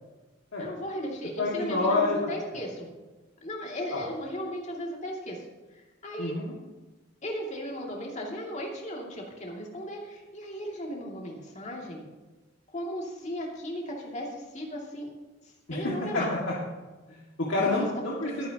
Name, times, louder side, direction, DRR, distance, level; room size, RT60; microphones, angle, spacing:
voice 1, 0.6-2.9 3.4-5.5 5.7-6.3 7.2-12.0 12.7-15.1 15.7-16.3 17.5-17.8 18.3-18.4, equal, 40° left, -1 dB, 2.6 m, -36 dB
voice 2, 1.4-2.2 2.5-2.6 3.9-4.1 6.2-6.6 15.7-15.8 16.1-16.2 17.1-18.5, left 3 dB, 80° left, -5 dB, 2.3 m, -28 dB
21.0 x 9.7 x 3.0 m, 1.2 s
head